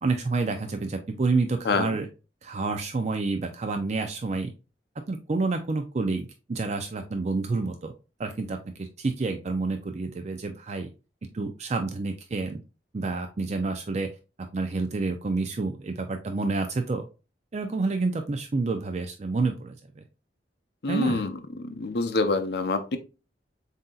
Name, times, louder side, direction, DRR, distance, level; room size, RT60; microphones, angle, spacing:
voice 1, 0.0-2.1 2.4-4.5 5.1-7.9 8.2-10.9 11.3-12.6 12.9-14.1 14.5-17.1 17.5-20.0 20.9-21.3, right 3 dB, 40° right, 6 dB, 0.4 m, -29 dB
voice 2, 20.8-21.3 21.6-23.0, left 3 dB, 60° left, 8 dB, 0.6 m, -26 dB
7.4 x 2.7 x 2.3 m, 0.30 s
head